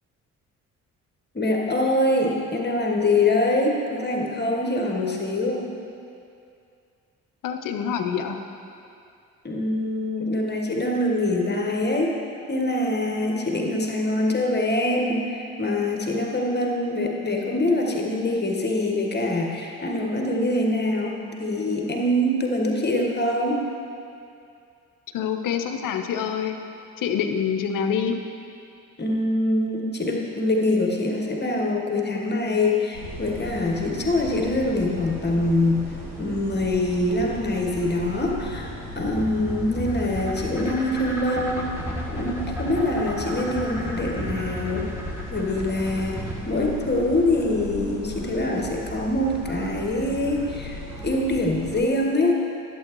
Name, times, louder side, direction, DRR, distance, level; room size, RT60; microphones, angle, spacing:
voice 1, 1.3-5.7 9.4-12.1 12.5-23.7 29.0-35.9 36.2-41.7 42.1-45.0 45.3-46.2 46.5-52.3, left 1 dB, 25° left, 0 dB, 1.4 m, -24 dB
voice 2, 7.4-8.4 25.1-26.6 27.0-28.1, left 7 dB, 50° left, 6 dB, 0.7 m, -26 dB
sound 1, 32.9-51.8, equal, 85° right, 1.3 m, -37 dB
sound 2, 38.2-46.4, equal, 5° right, 1.5 m, -33 dB
11.0 x 7.8 x 3.1 m, 2.5 s
figure-of-eight pair, 40°, 42 cm